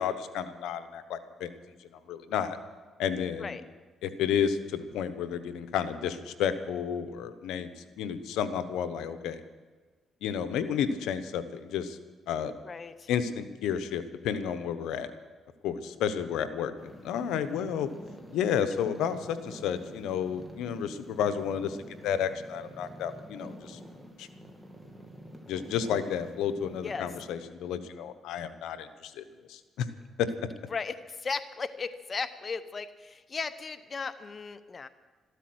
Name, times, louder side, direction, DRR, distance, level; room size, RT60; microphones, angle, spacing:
voice 1, 0.0-1.5 2.1-2.6 3.0-3.6 4.0-9.4 10.2-12.0 12.3-12.5 13.1-15.1 15.6-17.9 18.3-21.8 22.0-23.8 24.2-24.3 25.5-29.9 30.2-30.3, left 8 dB, 90° left, 11 dB, 1.0 m, -31 dB
voice 2, 12.6-13.1 26.8-27.1 30.7-34.9, left 5 dB, 35° left, 11 dB, 0.8 m, -36 dB
sound 1, 16.8-27.2, equal, 5° right, 2.5 m, -48 dB
13.5 x 13.0 x 7.9 m, 1.4 s
cardioid pair, 90°, 0 cm